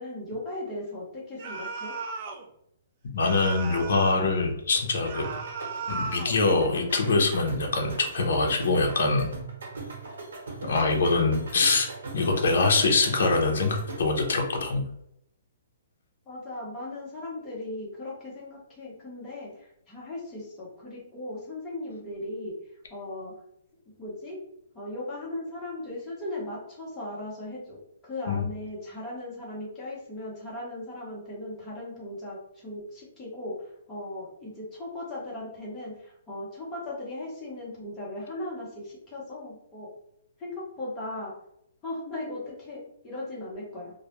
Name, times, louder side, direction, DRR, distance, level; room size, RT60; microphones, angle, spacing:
voice 1, 0.0-1.9 16.3-22.5 22.9-23.3 24.0-24.4 24.7-27.8 28.0-39.9 40.4-41.3 41.8-43.9, left 1 dB, 15° left, -6 dB, 0.9 m, -37 dB
sound 1, 1.4-2.5 3.2-4.3 5.1-6.4, right 4 dB, 35° right, 0.3 m, -36 dB
voice 2, 3.1-5.3 5.9-9.3 10.6-11.9 12.1-14.8 28.3-28.4, left 3 dB, 65° left, 1 dB, 0.6 m, -24 dB
sound 2, 4.7-14.3, right 3 dB, 85° right, 0.9 m, -40 dB
2.2 x 2.1 x 2.9 m, 0.76 s
hypercardioid pair, 170°, 0 cm